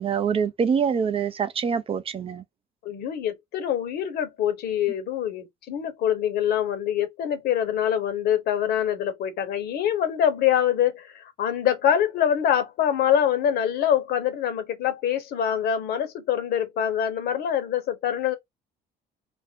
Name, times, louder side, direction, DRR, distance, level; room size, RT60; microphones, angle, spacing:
voice 1, 0.0-2.4, right 6 dB, 35° right, 0.4 m, -25 dB
voice 2, 2.8-18.3, left 9 dB, 70° left, 0.9 m, -25 dB
2.5 x 2.1 x 3.5 m
cardioid pair, 110°, 17 cm